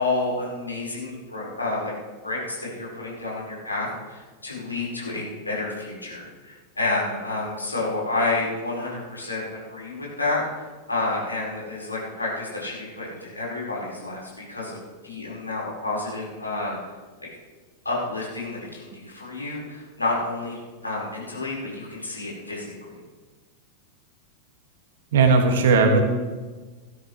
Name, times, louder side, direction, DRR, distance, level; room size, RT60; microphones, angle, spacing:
voice 1, 0.0-1.9 2.2-10.4 10.9-14.8 15.0-16.8 17.8-22.9, left 2 dB, 80° left, -5 dB, 5.2 m, -29 dB
voice 2, 25.1-26.0, right 4 dB, 60° right, 4 dB, 2.2 m, -17 dB
17.0 x 12.5 x 3.4 m, 1.3 s
figure-of-eight pair, 90°, 0 cm